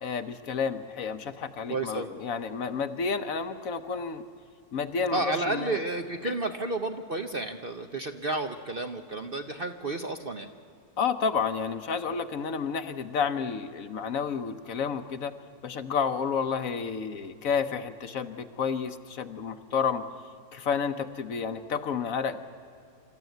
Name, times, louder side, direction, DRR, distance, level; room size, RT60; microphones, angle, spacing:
voice 1, 0.0-4.2 4.7-5.8 6.2-6.3 11.0-15.3 15.6-20.0 20.5-22.4, left 6 dB, 60° left, 10 dB, 1.1 m, -30 dB
voice 2, 1.7-2.1 5.1-10.5, right 2 dB, 45° right, 6 dB, 0.8 m, -31 dB
26.0 x 13.5 x 9.2 m, 2.5 s
omnidirectional pair, 1.8 m